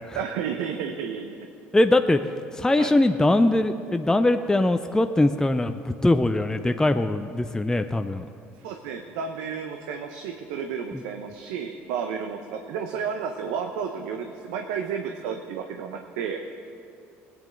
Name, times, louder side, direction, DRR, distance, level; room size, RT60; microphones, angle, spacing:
voice 1, 0.1-1.4 2.8-2.9 8.6-16.4, right 7 dB, 75° right, 5 dB, 0.7 m, -32 dB
voice 2, 1.7-2.2 2.5-8.2 10.9-11.0, left 2 dB, 10° left, 8 dB, 0.5 m, -21 dB
19.0 x 8.8 x 3.8 m, 2.5 s
hypercardioid pair, 65°, 6 cm